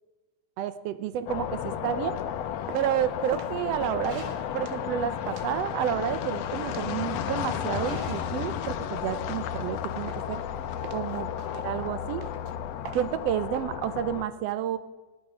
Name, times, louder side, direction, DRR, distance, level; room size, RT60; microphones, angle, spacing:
voice 1, 0.6-2.2 2.7-4.3 4.5-10.4 10.9-11.3 11.6-12.2 12.9-14.8, right 10 dB, 70° right, 13 dB, 1.6 m, -30 dB
sound 1, 1.3-14.2, left 9 dB, 70° left, 1.7 m, -33 dB
sound 2, 2.4-7.6 7.9-9.8 10.1-10.5 10.8-13.6, right 12 dB, 90° right, 2.2 m, -45 dB
sound 3, 4.1-4.7 6.8-7.1 7.8-8.4, right 1 dB, 50° right, 4.0 m, -45 dB
16.5 x 11.5 x 6.2 m, 1.2 s
omnidirectional pair, 3.5 m